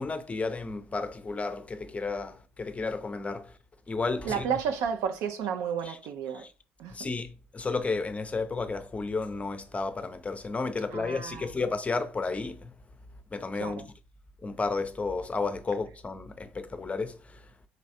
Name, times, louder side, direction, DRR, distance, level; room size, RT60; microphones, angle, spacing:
voice 1, 0.0-3.5 3.9-4.4 5.9-6.0 6.4-6.5 6.9-7.3 7.5-12.7 13.3-13.8 14.4-17.2, left 3 dB, 25° left, 0.5 m, -32 dB
voice 2, 4.2-6.5 6.8-7.0 10.9-11.5 13.6-13.8, right 7 dB, 60° right, 0.4 m, -32 dB
4.0 x 3.1 x 2.6 m
figure-of-eight pair, 50°, 6 cm